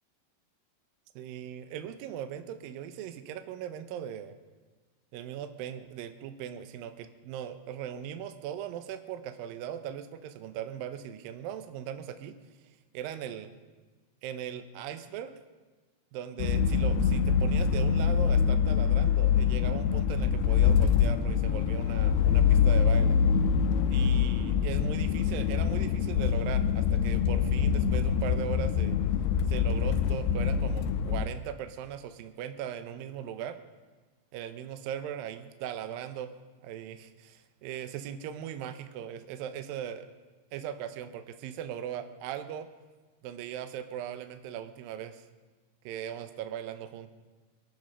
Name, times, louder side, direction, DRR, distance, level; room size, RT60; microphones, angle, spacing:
voice 1, 1.2-4.4 5.1-12.4 12.9-13.5 14.2-15.3 16.1-23.2 23.9-29.0 29.5-33.6 34.3-36.3 36.6-40.1 40.5-42.7 43.2-45.2 45.8-47.1, right 9 dB, 90° right, 9 dB, 2.0 m, -39 dB
sound 1, 16.4-31.3, left 7 dB, 85° left, 2.3 m, -25 dB
23.0 x 8.5 x 5.6 m, 1.3 s
omnidirectional pair, 5.3 m